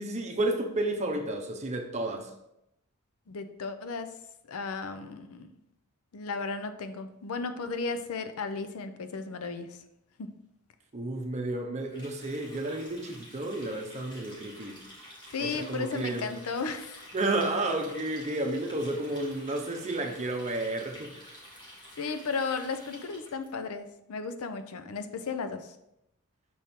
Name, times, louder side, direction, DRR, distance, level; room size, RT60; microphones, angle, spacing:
voice 1, 0.0-2.3 10.9-14.8 15.4-16.3 17.1-21.3, right 2 dB, 30° right, 0.7 m, -31 dB
voice 2, 3.3-4.1 4.5-5.5 6.1-9.8 10.2-10.3 15.3-17.1 22.0-25.8, left 4 dB, 75° left, 0.5 m, -35 dB
Water tap faucet, 11.9-23.5, equal, 20° left, 1.5 m, -50 dB
6.1 x 4.3 x 3.6 m
head